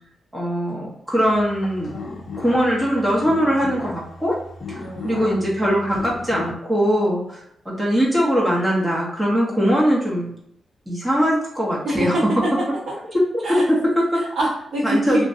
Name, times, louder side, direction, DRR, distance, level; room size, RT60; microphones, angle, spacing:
voice 1, 0.3-2.0 2.4-4.3 4.7-10.3 10.9-12.1 13.1-14.2 14.8-15.2, equal, 10° right, -6 dB, 0.8 m, -21 dB
sound 1, 1.3-6.5, left 3 dB, 55° left, 0.4 m, -36 dB
voice 2, 4.8-5.2 11.8-12.9 13.4-13.6 14.2-15.2, right 1 dB, 75° right, -8 dB, 0.7 m, -25 dB
2.6 x 2.1 x 2.5 m, 0.72 s
cardioid pair, 85°, 0 cm